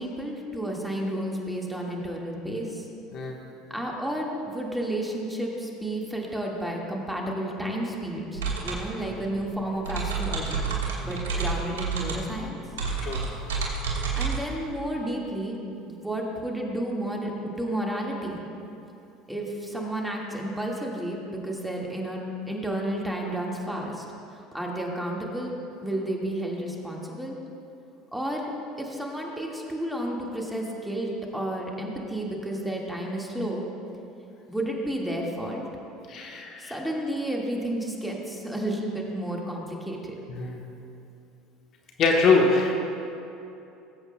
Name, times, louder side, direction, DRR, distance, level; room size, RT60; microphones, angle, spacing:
voice 1, 0.0-2.8 3.7-10.6 11.0-12.6 14.1-15.6 16.0-18.4 19.3-24.0 24.3-27.4 28.1-28.5 28.8-33.7 34.5-35.7 36.6-40.2, right 1 dB, 5° right, -2 dB, 1.7 m, -31 dB
sound 1, 8.3-14.4, right 5 dB, 85° right, 1.4 m, -30 dB
voice 2, 36.1-36.7 40.3-40.6 42.0-42.7, left 4 dB, 50° left, 1 dB, 1.2 m, -23 dB
19.0 x 7.9 x 2.2 m, 2.8 s
hypercardioid pair, 80°, 0 cm